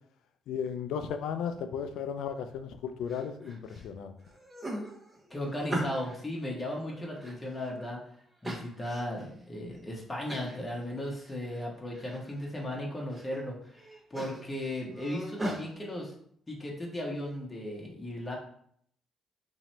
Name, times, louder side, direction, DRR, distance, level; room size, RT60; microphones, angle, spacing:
voice 1, 0.5-4.1, left 7 dB, 80° left, 9 dB, 0.4 m, -35 dB
sound 1, 3.1-3.8 4.2-6.2 6.7-7.9 8.4-9.3 9.7-9.8 10.3-10.6 11.0-11.7 11.9-12.5 12.9-13.4 13.7-15.6, right 1 dB, 20° right, 1.2 m, -39 dB
voice 2, 5.3-8.0 8.4-13.8 14.1-16.1 16.5-18.4, left 1 dB, 20° left, -2 dB, 1.1 m, -36 dB
2.9 x 2.7 x 4.2 m, 0.65 s
supercardioid pair, 70°, 0 cm